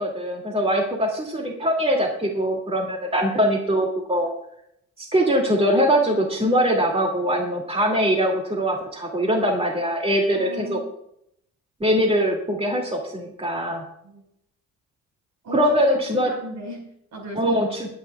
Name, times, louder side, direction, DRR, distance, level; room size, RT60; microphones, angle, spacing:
voice 1, 0.0-4.3 5.0-10.8 11.8-13.8 15.5-16.3 17.4-17.9, equal, 20° right, 0 dB, 2.7 m, -22 dB
voice 2, 10.3-10.9 14.0-14.2 15.4-17.6, right 1 dB, 65° right, 1 dB, 5.3 m, -37 dB
22.0 x 9.5 x 2.4 m, 0.74 s
cardioid pair, 90°, 30 cm